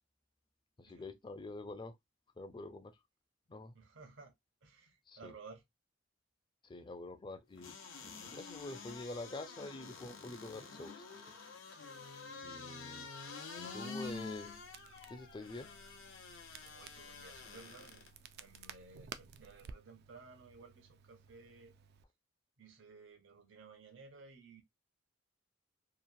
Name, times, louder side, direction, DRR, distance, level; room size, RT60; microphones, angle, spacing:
voice 1, 0.8-2.0 2.4-3.0 3.5-3.7 5.1-5.3 6.6-7.7 8.0-11.0 12.4-13.1 13.6-14.5 15.1-15.7, left 2 dB, 25° left, 0.4 m, -46 dB
voice 2, 3.7-4.3 4.6-5.6 12.3-12.6 16.6-18.1 18.4-21.7 22.6-24.6, right 4 dB, 70° right, 0.8 m, -56 dB
sound 1, 7.6-18.1 18.6-18.7, left 4 dB, 85° left, 0.7 m, -48 dB
Crackle, 14.0-22.0, right 6 dB, 55° right, 0.3 m, -55 dB
2.9 x 2.1 x 2.5 m
head